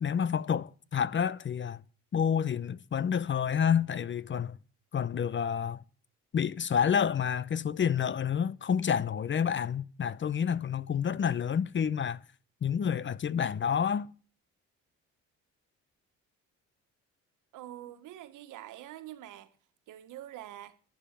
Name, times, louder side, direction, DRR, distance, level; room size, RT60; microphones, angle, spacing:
voice 1, 0.0-1.8 2.1-4.6 4.9-5.8 6.3-12.2 12.6-14.1, left 7 dB, 40° left, 0.8 m, -29 dB
voice 2, 17.5-19.5 19.9-20.8, right 13 dB, 90° right, 1.7 m, -45 dB
12.0 x 11.0 x 9.0 m
cardioid pair, 90°, 30 cm